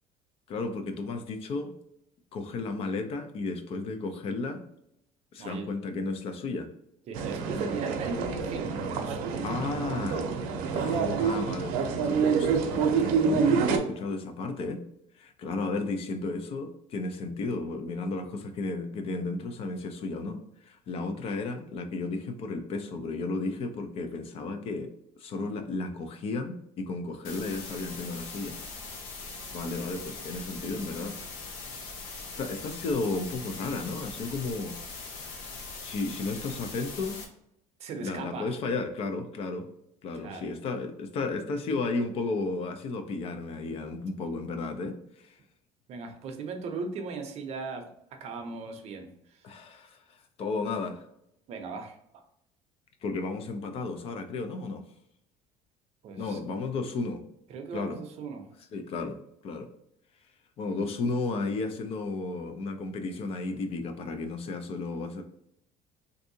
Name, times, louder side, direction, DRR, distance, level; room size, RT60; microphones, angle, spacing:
voice 1, 0.5-1.7 2.3-4.6 5.3-6.7 9.4-10.3 10.7-11.8 12.0-14.8 15.2-24.9 25.2-28.6 29.5-31.2 32.4-34.8 35.8-37.2 38.0-39.7 40.0-45.4 49.4-51.0 53.0-54.8 56.2-57.2 57.7-58.0 58.7-59.7 60.6-65.2, left 3 dB, 45° left, 7 dB, 0.4 m, -33 dB
voice 2, 7.1-9.5 37.8-38.5 40.1-40.5 45.9-49.4 51.5-52.0 56.0-56.4 57.5-58.5, right 4 dB, 45° right, 5 dB, 0.6 m, -38 dB
sound 1, 7.1-13.8, right 5 dB, 90° right, 0.6 m, -27 dB
sound 2, 27.2-37.2, left 3 dB, 80° left, 0.9 m, -41 dB
3.5 x 2.6 x 2.7 m, 0.78 s
cardioid pair, 155°, 14 cm